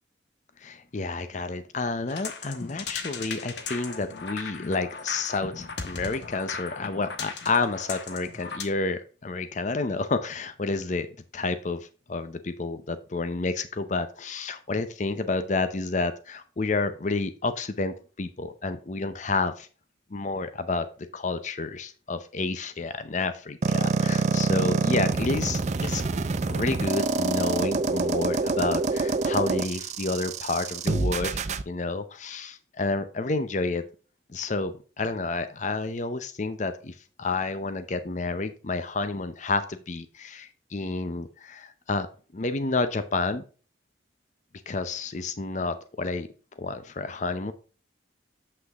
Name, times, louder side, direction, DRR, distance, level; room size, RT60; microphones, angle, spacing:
voice 1, 0.6-11.1 11.3-19.7 20.1-20.9 21.1-26.0 26.5-31.4 31.7-33.8 34.3-42.1 42.3-43.4 44.7-46.3 46.6-47.5, left 3 dB, 40° left, 0.6 m, -30 dB
sound 1, 2.1-8.6, left 4 dB, 65° left, 1.2 m, -37 dB
sound 2, 23.6-31.6, right 3 dB, 40° right, 0.5 m, -26 dB
7.8 x 6.0 x 3.5 m
head